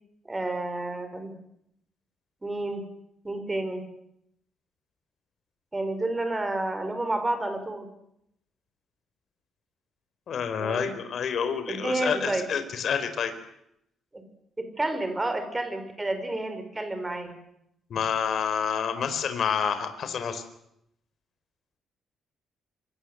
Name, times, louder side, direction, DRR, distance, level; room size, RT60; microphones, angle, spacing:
voice 1, 0.3-1.3 2.4-2.8 3.2-3.8 5.7-7.9 10.6-10.9 11.7-12.4 14.1-14.2 14.6-17.4, right 2 dB, 15° right, 7 dB, 5.3 m, -30 dB
voice 2, 10.3-13.3 17.9-20.4, left 7 dB, 50° left, 9 dB, 4.6 m, -28 dB
26.5 x 25.5 x 8.1 m, 0.76 s
cardioid pair, 145°, 0 cm